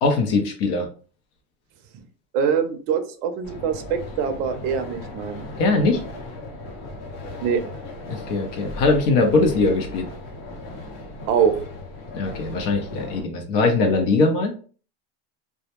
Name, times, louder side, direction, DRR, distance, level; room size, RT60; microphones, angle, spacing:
voice 1, 0.0-0.9 5.6-6.0 8.1-10.1 12.1-14.5, left 3 dB, 65° left, 3 dB, 0.6 m, -21 dB
voice 2, 2.3-5.4 7.4-7.6 11.3-11.5, right 7 dB, 45° right, 6 dB, 0.5 m, -23 dB
sound 1, 3.4-13.2, left 2 dB, 90° left, 0.9 m, -37 dB
2.2 x 2.0 x 2.8 m, 0.39 s
supercardioid pair, 160°, 29 cm